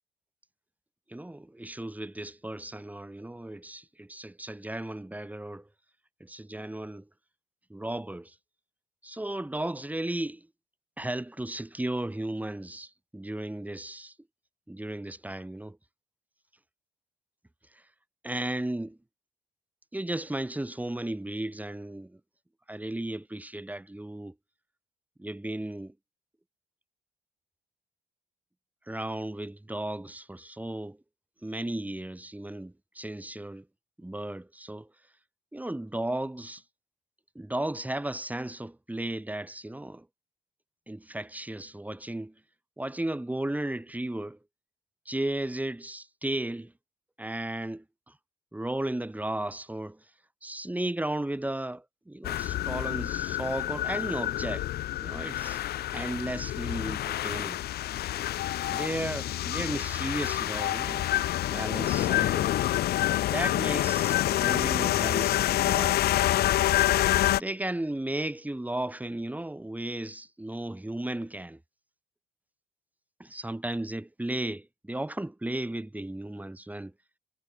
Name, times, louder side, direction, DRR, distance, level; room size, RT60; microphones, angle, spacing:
voice 1, 1.1-5.7 6.2-7.1 7.7-8.3 9.0-10.5 11.0-14.1 14.7-15.8 18.2-19.0 19.9-22.2 22.7-24.3 25.2-25.9 28.9-31.0 31.4-33.6 34.0-34.9 35.5-36.6 37.3-40.1 40.9-42.3 42.8-44.4 45.0-46.7 47.2-48.1 48.5-50.0 50.4-54.7 55.0-55.6 55.9-57.6 58.7-61.1 61.4-62.6 63.2-66.0 67.3-71.6 73.2-76.9, right 1 dB, 10° right, 4.8 m, -35 dB
sound 1, 52.2-67.4, left 13 dB, 70° left, 0.8 m, -27 dB
cardioid pair, 85°, 17 cm